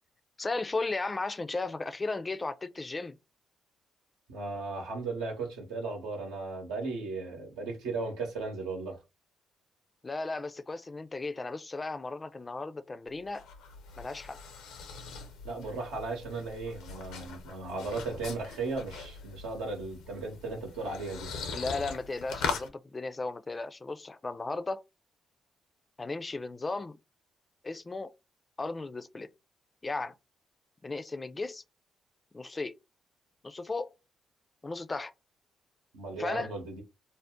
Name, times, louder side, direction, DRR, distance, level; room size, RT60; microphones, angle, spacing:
voice 1, 0.4-3.2 10.0-13.4 14.0-14.4 21.5-24.8 26.0-27.0 27.6-28.1 28.6-29.3 29.8-30.2 30.8-31.6 32.3-32.7 33.4-33.9 34.6-35.1 36.2-36.5, left 3 dB, 30° left, 0.4 m, -35 dB
voice 2, 4.3-9.0 15.4-21.3 35.9-36.8, right 3 dB, 90° right, 0.9 m, -36 dB
sound 1, 13.1-22.7, left 5 dB, 85° left, 0.5 m, -41 dB
2.5 x 2.0 x 3.5 m
supercardioid pair, 55°, 0 cm